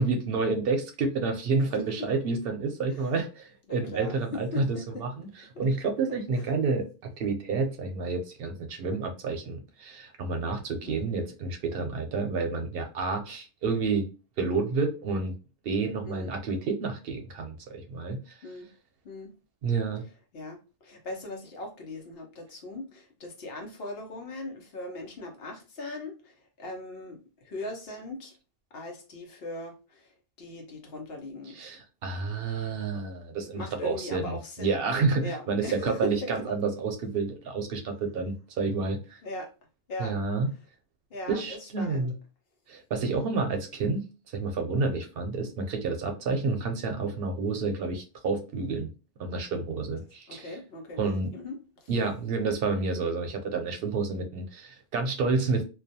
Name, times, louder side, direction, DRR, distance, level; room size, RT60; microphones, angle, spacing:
voice 1, 0.0-4.7 5.0-5.3 5.6-14.1 14.4-15.3 15.6-18.3 19.6-20.0 31.6-39.2 40.0-40.5 41.3-42.1 42.7-44.0 44.3-48.9 49.2-50.5 51.0-51.3 51.9-55.6, right 4 dB, 70° right, 0.7 m, -29 dB
voice 2, 1.8-2.1 2.9-3.2 3.7-5.0 6.3-6.5 10.8-11.1 16.1-16.3 18.4-18.7 19.0-19.3 20.3-28.4 28.7-31.6 33.5-34.8 35.2-36.5 39.2-39.5 39.9-40.2 41.1-42.1 42.9-43.3 50.3-51.6 51.8-51.9, left 2 dB, 70° left, 0.9 m, -40 dB
2.4 x 2.2 x 2.6 m
omnidirectional pair, 1.0 m